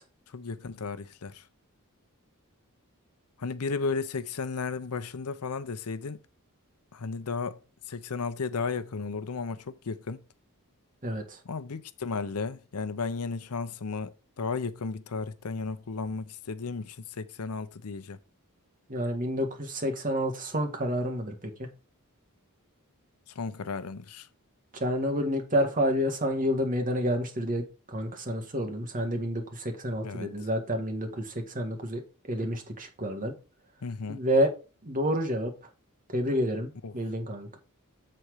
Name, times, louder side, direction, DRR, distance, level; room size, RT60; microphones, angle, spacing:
voice 1, 0.3-1.3 3.4-6.2 6.9-7.6 7.9-10.2 11.5-14.1 14.4-18.2 23.4-24.2 30.0-30.3 33.8-34.2 36.8-36.9, left 4 dB, 80° left, 0.7 m, -34 dB
voice 2, 18.9-21.3 21.6-21.7 24.8-27.6 27.9-32.0 32.3-33.3 34.1-34.5 34.8-35.5 36.1-37.6, equal, 40° right, 1.7 m, -29 dB
7.8 x 4.3 x 4.8 m
head